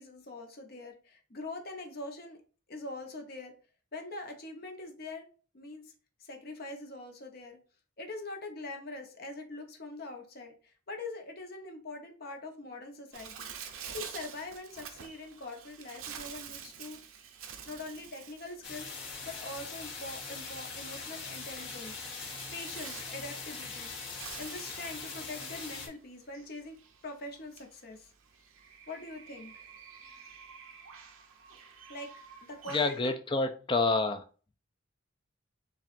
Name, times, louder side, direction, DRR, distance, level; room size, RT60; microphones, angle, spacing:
voice 1, 0.0-2.4 2.7-3.5 3.9-5.3 5.5-5.9 6.2-7.6 8.0-17.0 17.7-18.9 19.2-22.0 22.5-23.9 24.4-26.8 27.0-28.1 28.9-29.7 31.9-32.1 32.4-33.1, left 2 dB, 45° left, 3 dB, 0.8 m, -43 dB
Bird, 13.1-33.0, right 7 dB, 80° right, 0.6 m, -49 dB
sound 1, 18.6-25.9, left 4 dB, 65° left, 1.6 m, -41 dB
voice 2, 32.7-34.2, left 3 dB, 25° left, 8 dB, 0.4 m, -28 dB
7.1 x 2.4 x 2.5 m, 0.38 s
head